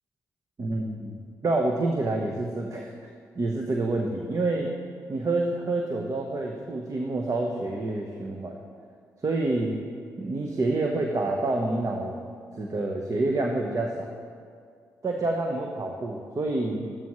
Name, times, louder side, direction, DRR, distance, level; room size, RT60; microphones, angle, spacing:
voice 1, 0.6-3.1 3.3-4.7 5.1-8.6 9.2-9.8 10.2-12.2 12.6-14.1 15.0-17.0, right 2 dB, 45° right, 1 dB, 1.2 m, -28 dB
14.5 x 12.5 x 3.2 m, 2.1 s
hypercardioid pair, 40°, 8 cm